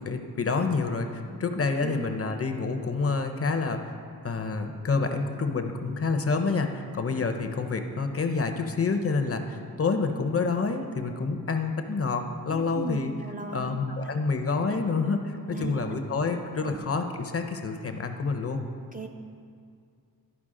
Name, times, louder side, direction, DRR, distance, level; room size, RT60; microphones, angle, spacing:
voice 1, 0.0-3.9 4.2-13.1 13.5-18.7, left 4 dB, 40° left, 6 dB, 0.6 m, -28 dB
voice 2, 12.5-14.3 15.5-15.8 16.6-16.8 18.9-19.1, right 5 dB, 25° right, 3 dB, 0.4 m, -38 dB
12.0 x 4.6 x 3.7 m, 2.3 s
wide cardioid pair, 85°, 38 cm